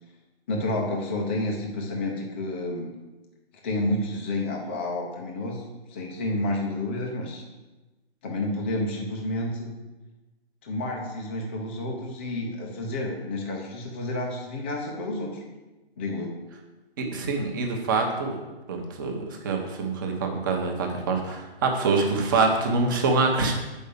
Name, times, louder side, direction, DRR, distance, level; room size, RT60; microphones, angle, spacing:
voice 1, 0.5-2.9 3.6-5.6 5.9-7.4 8.2-9.7 10.6-15.4 16.0-16.3, left 1 dB, 10° left, -1 dB, 0.6 m, -30 dB
voice 2, 17.0-18.4 18.7-23.5, right 3 dB, 20° right, 2 dB, 1.0 m, -25 dB
7.8 x 5.5 x 6.7 m, 1.1 s
hypercardioid pair, 160°, 31 cm